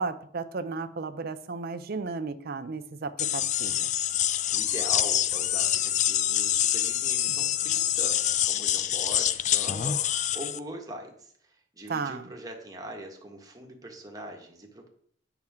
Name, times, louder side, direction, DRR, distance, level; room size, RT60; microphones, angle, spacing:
voice 1, 0.0-3.9 11.9-12.3, right 4 dB, 55° right, 10 dB, 0.6 m, -34 dB
sound 1, 3.2-10.6, left 11 dB, 40° left, 0.3 m, -26 dB
voice 2, 4.5-14.9, right 1 dB, 20° right, 1 dB, 1.4 m, -42 dB
8.9 x 6.0 x 3.6 m, 0.63 s
head